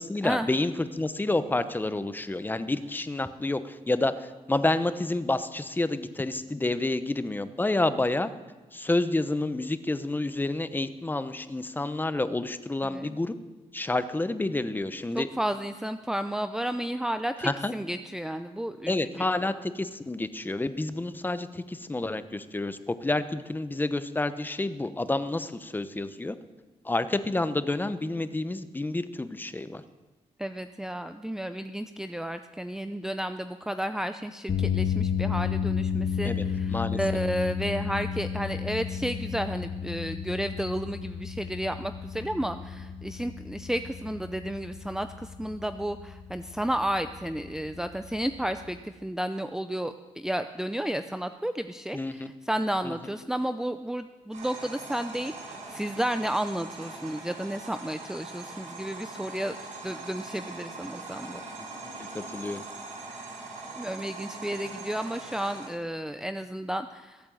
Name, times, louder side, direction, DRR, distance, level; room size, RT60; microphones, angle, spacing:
voice 1, 0.0-8.3 8.7-13.4 13.7-15.3 17.4-17.7 18.9-26.4 26.8-29.8 36.2-36.4 36.7-37.0 51.9-52.3 52.8-53.1 62.0-62.6, left 2 dB, 15° left, 12 dB, 0.9 m, -29 dB
voice 2, 12.8-13.2 15.1-19.3 30.4-59.6 59.8-61.4 63.8-67.3, right 1 dB, 5° right, 9 dB, 0.5 m, -32 dB
sound 1, 34.5-48.8, left 7 dB, 60° left, 2.5 m, -32 dB
sound 2, 54.3-65.7, right 3 dB, 70° right, 6.9 m, -42 dB
21.0 x 8.8 x 7.8 m, 1.2 s
cardioid pair, 100°, 12 cm